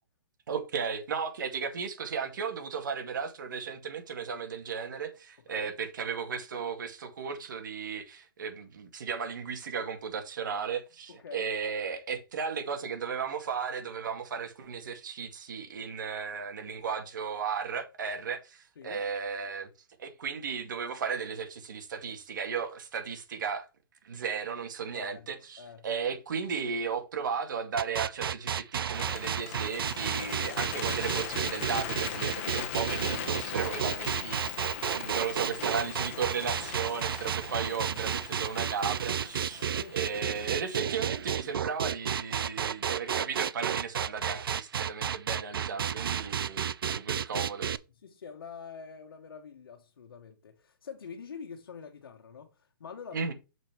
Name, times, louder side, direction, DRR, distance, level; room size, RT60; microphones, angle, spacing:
voice 1, 0.5-19.7 20.0-23.7 24.0-47.7 53.1-53.3, right 6 dB, 60° right, 2.1 m, -35 dB
voice 2, 11.1-11.5 18.8-19.0 24.9-25.3 25.6-25.9 39.8-40.0 46.8-47.3 48.0-53.3, left 6 dB, 80° left, 1.4 m, -45 dB
sound 1, 27.8-47.8, right 8 dB, 85° right, 0.6 m, -32 dB
Bird, 28.9-41.1, left 9 dB, 35° left, 1.6 m, -40 dB
6.7 x 5.4 x 4.6 m
hypercardioid pair, 170°, 12 cm